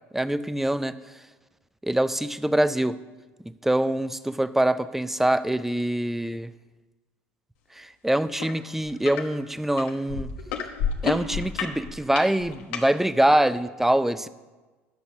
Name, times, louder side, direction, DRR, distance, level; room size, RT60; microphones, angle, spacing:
voice 1, 0.1-1.0 1.8-3.0 3.6-6.5 7.8-10.3 11.0-14.3, right 1 dB, 5° right, 14 dB, 0.5 m, -24 dB
sound 1, 8.4-8.5 8.9-9.2 9.8-12.9 13.6-13.7, left 7 dB, 75° left, 1.2 m, -30 dB
9.5 x 6.5 x 6.3 m, 1.2 s
hypercardioid pair, 75°, 7 cm